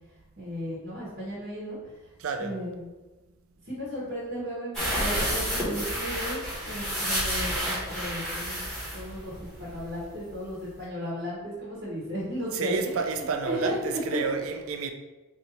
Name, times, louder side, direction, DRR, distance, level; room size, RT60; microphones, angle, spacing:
voice 1, 0.4-1.8 2.4-2.9 3.6-8.6 8.9-14.4, equal, 45° right, 1.1 m, -35 dB
voice 2, 2.2-2.6 12.5-14.9, right 4 dB, 75° right, 0.4 m, -30 dB
sound 1, 4.7-10.0 10.3-10.4 10.7-10.8, equal, ahead, 1.3 m, -30 dB
3.2 x 2.7 x 4.1 m
head